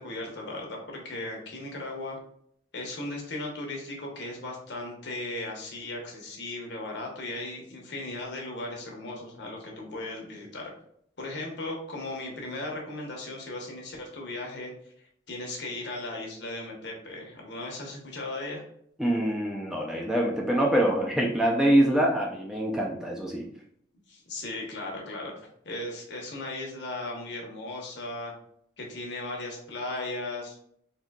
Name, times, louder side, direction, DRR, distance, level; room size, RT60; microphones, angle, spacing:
voice 1, 0.0-2.2 2.7-10.7 11.2-14.7 15.3-18.6 24.1-25.3 25.6-28.3 28.8-30.6, left 2 dB, 65° left, 0 dB, 0.9 m, -37 dB
voice 2, 19.0-23.5, right 1 dB, 5° right, -2 dB, 0.4 m, -24 dB
3.7 x 2.7 x 2.2 m, 0.69 s
head